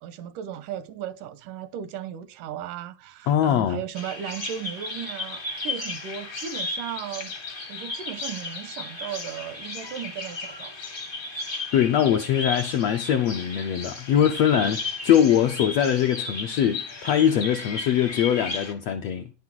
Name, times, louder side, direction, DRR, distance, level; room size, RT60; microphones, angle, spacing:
voice 1, 0.0-7.4 7.7-10.7, right 10 dB, 85° right, 2.3 m, -36 dB
voice 2, 3.3-3.8 11.7-19.4, left 9 dB, 80° left, 1.5 m, -22 dB
Bird vocalization bird call bird song, 3.9-18.7, left 3 dB, 50° left, 0.6 m, -35 dB
10.0 x 8.2 x 4.5 m
omnidirectional pair, 3.8 m